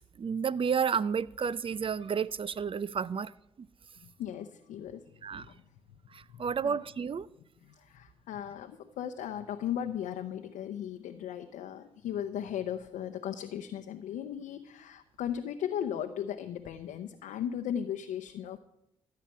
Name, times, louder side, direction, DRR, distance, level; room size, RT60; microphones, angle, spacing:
voice 1, 0.2-3.3 3.6-3.7 5.2-5.5 6.1-7.3, right 6 dB, 45° right, 0.6 m, -31 dB
voice 2, 4.0-5.0 5.3-5.6 6.3-6.8 7.8-18.6, left 9 dB, 85° left, 0.8 m, -37 dB
14.0 x 5.8 x 9.6 m
supercardioid pair, 50°, 13 cm